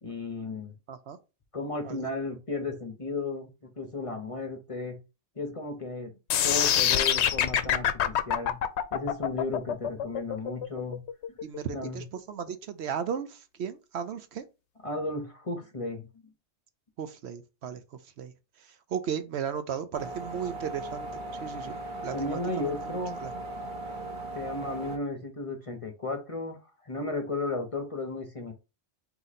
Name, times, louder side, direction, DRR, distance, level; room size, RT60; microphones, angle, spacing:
voice 1, 0.0-0.7 1.5-5.0 5.4-6.1 6.4-8.6 8.9-11.0 11.7-12.0 14.8-16.1 22.1-23.2 24.3-28.5, left 2 dB, 35° left, 0.8 m, -34 dB
voice 2, 0.9-1.2 1.8-2.0 11.4-14.4 17.0-18.3 18.6-22.7 23.2-23.3, right 8 dB, 70° right, 0.8 m, -36 dB
sound 1, 6.3-12.3, left 10 dB, 70° left, 0.8 m, -26 dB
sound 2, 19.9-25.0, right 2 dB, 45° right, 1.0 m, -38 dB
3.8 x 2.9 x 4.0 m
omnidirectional pair, 1.2 m